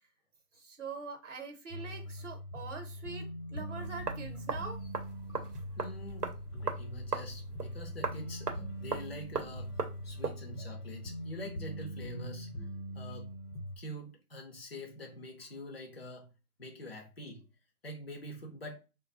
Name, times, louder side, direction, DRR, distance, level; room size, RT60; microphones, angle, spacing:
voice 1, 0.5-4.8, right 4 dB, 50° right, 0.9 m, -44 dB
sound 1, 1.7-13.8, equal, 65° left, 0.8 m, -42 dB
sound 2, 3.8-10.4, right 5 dB, 90° right, 0.8 m, -39 dB
voice 2, 5.8-12.5 12.9-13.3 13.8-16.3 16.6-17.5 17.8-18.8, equal, 40° left, 0.5 m, -45 dB
3.3 x 2.2 x 2.4 m
figure-of-eight pair, 170°, 46 cm